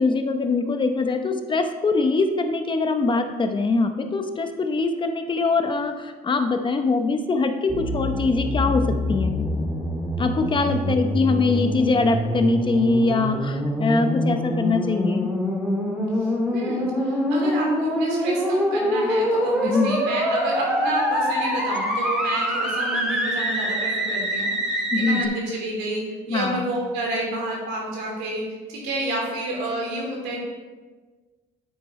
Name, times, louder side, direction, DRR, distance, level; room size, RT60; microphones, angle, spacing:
voice 1, 0.0-9.5 10.2-15.3 19.6-20.0 24.9-25.3 26.3-26.7, left 3 dB, 30° left, 6 dB, 0.8 m, -23 dB
sound 1, 7.7-25.2, equal, 5° right, 1.7 m, -25 dB
voice 2, 16.2-28.4 28.7-30.4, right 1 dB, 90° right, -2 dB, 3.0 m, -30 dB
9.4 x 8.5 x 3.2 m, 1.3 s
cardioid pair, 110°, 17 cm